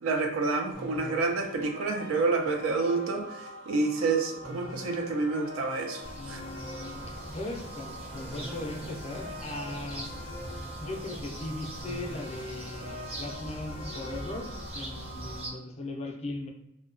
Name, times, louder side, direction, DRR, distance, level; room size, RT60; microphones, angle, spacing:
voice 1, 0.0-6.4, right 3 dB, 80° right, 3 dB, 0.4 m, -29 dB
sound 1, 0.7-15.5, left 1 dB, 60° right, 0.9 m, -43 dB
voice 2, 5.9-10.1 10.8-16.5, left 2 dB, 30° left, 2 dB, 0.4 m, -39 dB
sound 2, 6.0-15.5, right 1 dB, 30° right, 0.6 m, -41 dB
2.6 x 2.2 x 2.4 m, 0.85 s
head